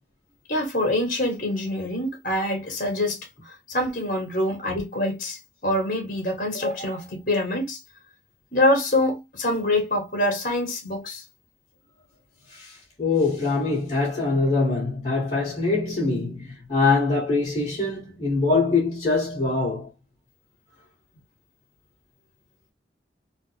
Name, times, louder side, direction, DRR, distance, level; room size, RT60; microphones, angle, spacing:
voice 1, 0.5-3.2 3.5-7.8 8.5-11.2, left 1 dB, 50° left, 1.9 m, -25 dB
voice 2, 12.5-19.9, left 3 dB, 30° left, 1.9 m, -23 dB
4.1 x 2.2 x 3.2 m
head